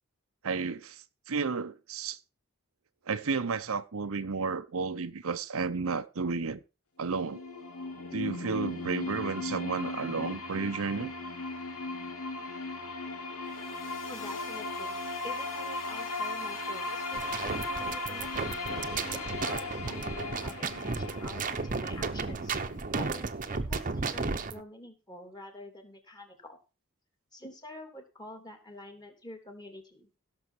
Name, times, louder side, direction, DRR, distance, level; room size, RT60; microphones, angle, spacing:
voice 1, 0.4-2.2 3.1-6.6 7.0-7.4 8.1-11.1, right 4 dB, 70° right, 0.7 m, -32 dB
sound 1, 7.0-23.0, left 2 dB, 90° left, 2.6 m, -37 dB
sound 2, 13.4-19.3, left 3 dB, 60° left, 1.4 m, -46 dB
voice 2, 14.1-15.0 15.2-18.5 19.1-22.5 23.0-26.6 27.3-30.1, left 1 dB, 20° left, 3.1 m, -47 dB
sound 3, 17.1-24.6, right 4 dB, 40° right, 1.0 m, -34 dB
16.5 x 7.0 x 4.5 m
head